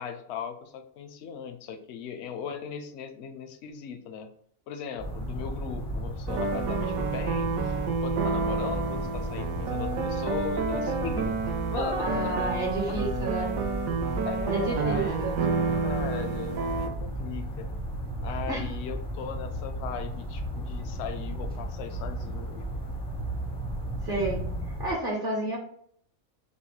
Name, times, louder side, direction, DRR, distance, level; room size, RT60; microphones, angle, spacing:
voice 1, 0.0-4.3 4.7-12.5 12.8-13.0 14.2-17.7 18.2-22.7, left 7 dB, 65° left, 7 dB, 0.7 m, -38 dB
sound 1, 5.0-24.9, right 1 dB, 5° left, 0.4 m, -35 dB
sound 2, 6.3-16.9, right 4 dB, 75° right, 1.1 m, -30 dB
voice 2, 12.0-13.5 14.5-15.3 18.5-18.6 24.0-24.4 24.8-25.6, right 2 dB, 45° right, -2 dB, 1.0 m, -30 dB
5.6 x 2.2 x 3.2 m, 0.65 s
omnidirectional pair, 1.5 m